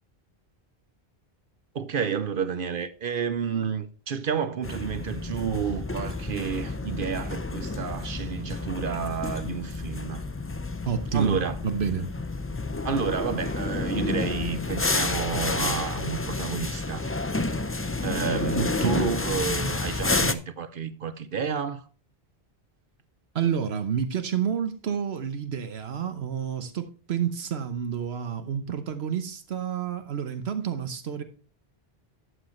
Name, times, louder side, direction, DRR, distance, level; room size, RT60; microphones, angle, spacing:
voice 1, 1.7-10.2 11.1-11.6 12.8-17.1 17.7-21.9, right 7 dB, 60° right, 0.9 m, -30 dB
sound 1, 4.6-20.3, left 3 dB, 15° left, 0.5 m, -30 dB
voice 2, 10.9-12.1 18.6-19.1 23.3-31.2, right 8 dB, 80° right, 1.2 m, -29 dB
12.0 x 8.2 x 3.1 m
omnidirectional pair, 1.1 m